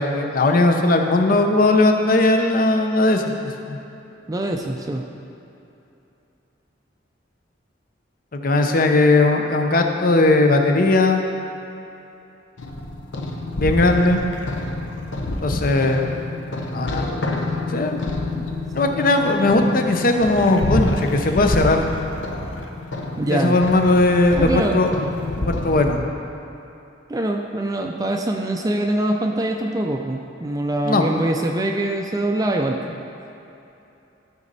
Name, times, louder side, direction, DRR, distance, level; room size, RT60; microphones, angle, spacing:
voice 1, 0.0-3.3 3.6-3.8 8.3-11.2 13.6-14.2 15.4-16.1 16.7-17.1 17.7-18.0 18.7-21.8 23.3-25.0 25.4-26.0 30.8-31.1, left 2 dB, 50° left, 4 dB, 0.7 m, -18 dB
voice 2, 4.3-5.0 18.3-18.5 23.2-23.6 24.3-24.8 27.1-32.8, right 1 dB, 20° right, 2 dB, 0.4 m, -24 dB
sound 1, 12.6-25.9, left 2 dB, 80° left, 0.8 m, -27 dB
13.0 x 5.3 x 4.0 m, 2.8 s
head